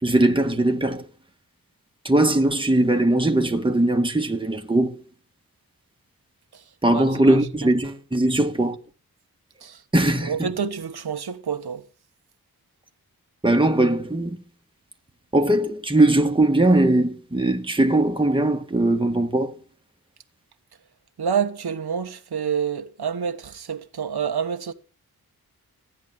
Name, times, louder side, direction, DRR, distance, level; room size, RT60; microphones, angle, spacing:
voice 1, 0.0-1.1 2.0-5.0 6.8-8.8 9.9-10.5 13.4-14.4 15.3-19.5, right 1 dB, 15° right, 1.7 m, -20 dB
voice 2, 6.9-7.4 9.6-9.8 10.2-11.8 21.2-24.7, right 7 dB, 80° right, 1.3 m, -28 dB
15.0 x 10.0 x 7.2 m
wide cardioid pair, 85°, 38 cm